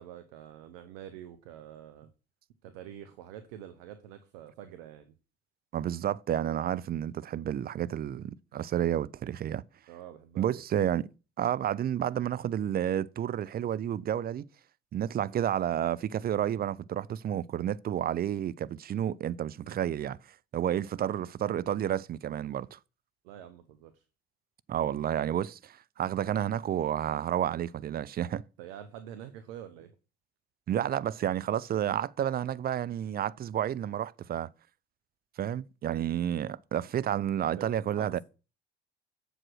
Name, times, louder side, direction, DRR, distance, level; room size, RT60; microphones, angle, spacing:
voice 1, 0.0-2.1 2.6-5.1 9.9-10.6 23.2-24.0 28.6-29.9 37.6-37.7 38.0-38.2, right 10 dB, 75° right, 0.8 m, -46 dB
voice 2, 5.7-9.6 10.4-11.1 11.4-14.5 14.9-20.2 20.5-22.8 24.7-28.4 30.7-34.5 35.4-38.2, right 10 dB, 30° right, 0.4 m, -30 dB
7.4 x 5.0 x 6.2 m
hypercardioid pair, 60°, 31 cm